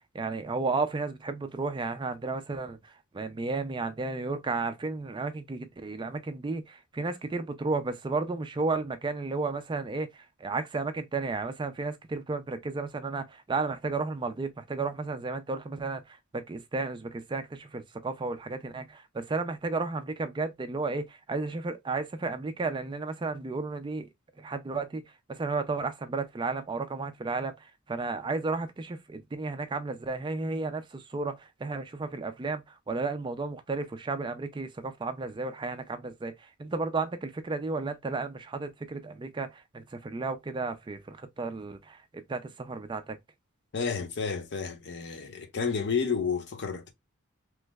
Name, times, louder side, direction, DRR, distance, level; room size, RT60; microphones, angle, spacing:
voice 1, 0.1-2.8 3.1-16.0 16.3-24.1 24.4-25.0 25.3-27.6 27.9-36.3 36.6-42.0 42.3-43.2, right 3 dB, 20° right, 0.3 m, -33 dB
voice 2, 43.7-46.9, left 5 dB, 55° left, 0.6 m, -31 dB
3.1 x 2.0 x 3.3 m
head